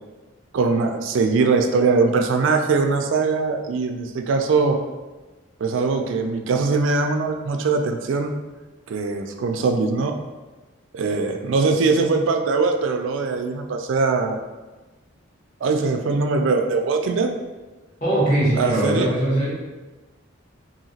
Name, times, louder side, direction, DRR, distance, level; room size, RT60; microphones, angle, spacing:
voice 1, 0.5-4.8 5.6-8.3 8.9-10.1 10.9-14.4 15.6-17.3 18.6-19.1, right 4 dB, 65° right, 5 dB, 0.3 m, -21 dB
voice 2, 18.0-19.5, right 1 dB, 40° left, -8 dB, 1.0 m, -21 dB
2.8 x 2.7 x 2.7 m, 1.2 s
head